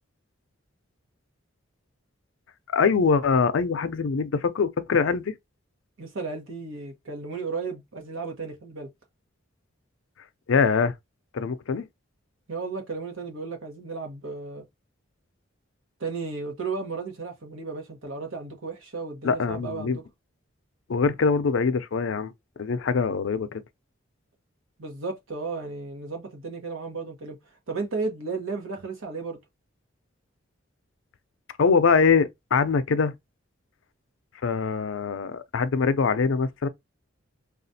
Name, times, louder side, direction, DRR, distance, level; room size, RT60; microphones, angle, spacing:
voice 1, 2.7-5.3 10.5-10.9 11.3-11.8 19.2-20.0 20.9-22.3 22.6-23.6 31.6-33.1 34.4-36.7, left 5 dB, 70° left, 0.4 m, -23 dB
voice 2, 6.0-8.9 12.5-14.6 16.0-20.0 24.8-27.4 27.7-29.4, right 4 dB, 85° right, 1.1 m, -34 dB
4.8 x 2.3 x 2.7 m
head